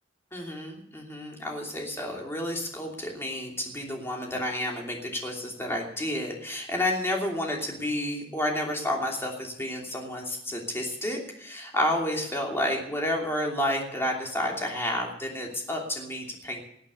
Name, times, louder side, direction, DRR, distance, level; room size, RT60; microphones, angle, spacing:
voice 1, 0.3-16.7, left 1 dB, 15° left, 0 dB, 2.9 m, -30 dB
18.0 x 8.7 x 6.8 m, 0.74 s
head